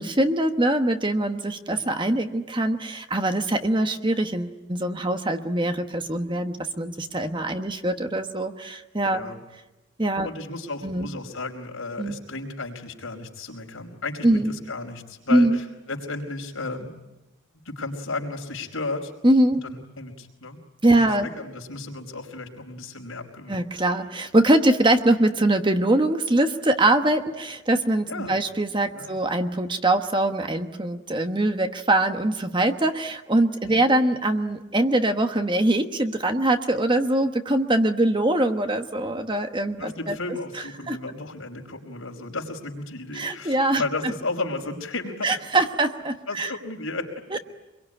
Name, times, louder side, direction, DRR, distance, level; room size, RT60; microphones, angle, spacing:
voice 1, 0.0-9.2 10.0-10.3 10.8-11.1 12.0-12.2 14.2-14.5 15.3-15.6 19.2-19.6 20.8-21.3 23.5-40.1 40.9-41.0 43.1-43.8 45.2-46.5 47.3-47.4, right 1 dB, 20° right, 7 dB, 1.2 m, -23 dB
voice 2, 9.1-9.4 10.2-16.9 17.6-19.1 19.6-20.6 20.9-23.6 28.1-28.4 28.9-29.2 33.7-33.8 39.8-45.4 46.3-47.2, left 3 dB, 75° left, 1 dB, 4.8 m, -34 dB
25.5 x 22.5 x 9.9 m, 1.0 s
head